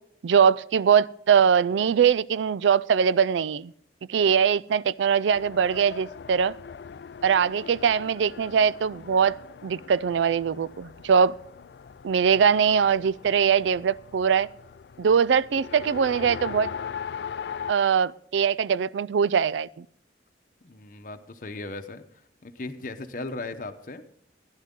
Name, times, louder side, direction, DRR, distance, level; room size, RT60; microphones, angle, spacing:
voice 1, 0.2-3.7 4.1-6.6 7.2-9.4 9.6-11.3 12.0-14.5 15.0-16.7 17.7-19.9, right 7 dB, 85° right, 0.4 m, -22 dB
Race car auto racing, 5.3-17.7, left 7 dB, 65° left, 0.4 m, -40 dB
voice 2, 20.6-22.0 22.4-24.0, left 2 dB, 45° left, 0.8 m, -37 dB
16.0 x 10.5 x 3.7 m
head